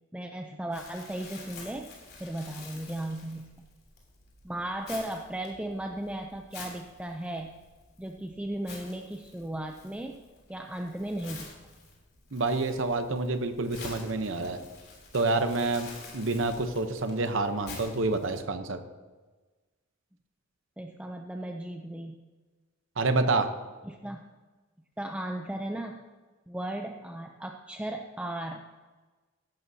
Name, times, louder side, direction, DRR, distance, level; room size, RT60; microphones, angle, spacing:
voice 1, 0.1-1.9 2.2-3.5 4.4-7.5 8.0-10.2 10.5-11.5 20.8-22.2 23.8-24.3 25.0-26.0 26.5-28.6, right 1 dB, 5° right, 3 dB, 0.5 m, -36 dB
Crumpling crinkling, 0.7-18.4, left 3 dB, 50° left, 3.2 m, -48 dB
voice 2, 12.3-14.6 15.1-15.9 16.1-18.8 23.0-23.5, right 3 dB, 70° right, 8 dB, 0.9 m, -28 dB
15.5 x 11.5 x 2.8 m, 1.3 s
head